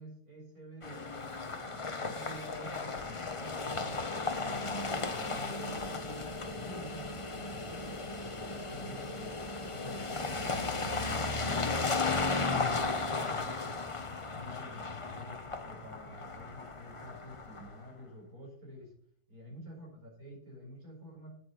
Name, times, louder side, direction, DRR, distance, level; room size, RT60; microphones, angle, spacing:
voice 1, 0.0-4.8 5.1-6.3 6.6-9.4 9.7-12.0 12.3-13.8 14.1-19.0 19.3-21.3, equal, 65° right, -1 dB, 5.4 m, -49 dB
sound 1, 0.8-17.8, left 3 dB, 25° left, 0.7 m, -35 dB
8.7 x 8.3 x 6.9 m, 0.64 s
omnidirectional pair, 1.7 m